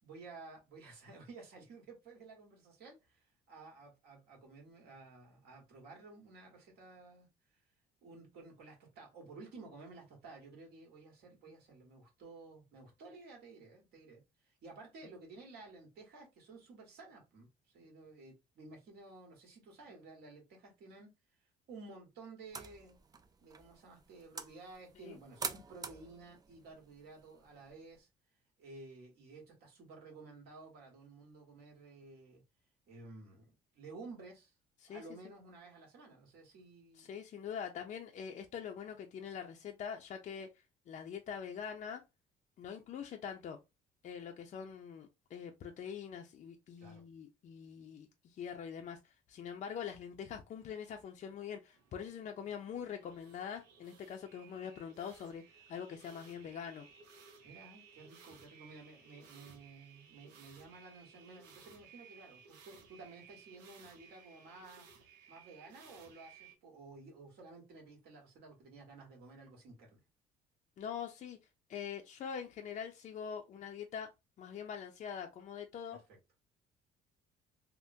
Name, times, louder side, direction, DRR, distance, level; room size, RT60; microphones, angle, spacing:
voice 1, 0.0-7.3 8.0-21.1 21.7-23.0 23.4-28.1 28.6-32.4 32.9-34.5 34.9-37.1 46.8-47.0 57.4-64.9 65.3-70.0, right 3 dB, 70° right, 1.5 m, -54 dB
sound 1, 22.4-28.0, right 5 dB, 20° right, 0.4 m, -47 dB
voice 2, 36.9-40.5 40.9-42.0 42.6-43.6 44.0-55.4 55.7-56.9 70.8-71.4 71.7-74.1 74.4-76.0, left 7 dB, 45° left, 0.5 m, -44 dB
sound 2, 51.7-66.6, right 6 dB, 90° right, 0.8 m, -59 dB
3.5 x 2.1 x 2.6 m
cardioid pair, 110°, 17 cm